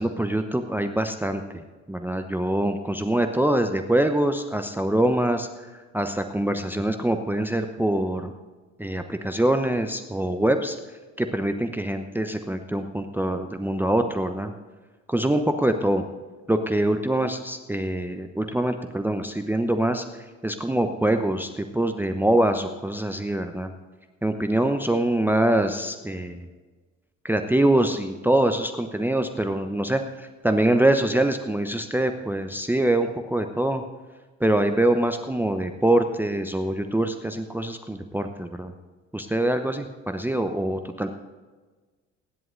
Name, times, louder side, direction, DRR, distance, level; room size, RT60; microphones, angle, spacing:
voice 1, 0.0-8.3 8.8-10.8 11.2-14.5 15.1-16.0 16.5-23.7 24.2-26.5 27.2-33.8 34.4-38.7 39.1-41.1, right 1 dB, 5° right, 7 dB, 0.8 m, -24 dB
25.0 x 11.0 x 2.6 m, 1.3 s
figure-of-eight pair, 55°, 38 cm